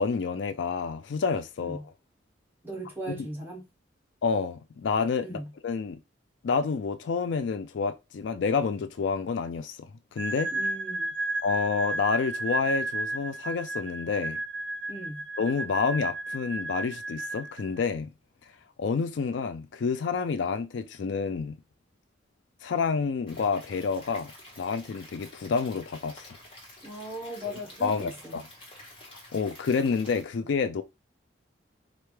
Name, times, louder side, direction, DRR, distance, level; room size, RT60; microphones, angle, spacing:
voice 1, 0.0-1.8 3.1-3.3 4.2-5.3 5.6-6.0 6.4-10.5 11.4-14.4 15.4-18.1 18.8-21.6 22.6-26.4 27.4-27.5 27.8-28.4 29.3-30.8, left 5 dB, 75° left, 0.4 m, -29 dB
voice 2, 2.6-3.7 5.2-5.5 10.5-11.1 14.9-15.3 26.8-28.4, right 1 dB, 10° right, 1.1 m, -38 dB
sound 1, 10.2-17.8, right 2 dB, 70° right, 0.5 m, -33 dB
Stream / Liquid, 23.3-30.2, left 1 dB, 30° left, 1.5 m, -49 dB
4.4 x 2.5 x 3.2 m
head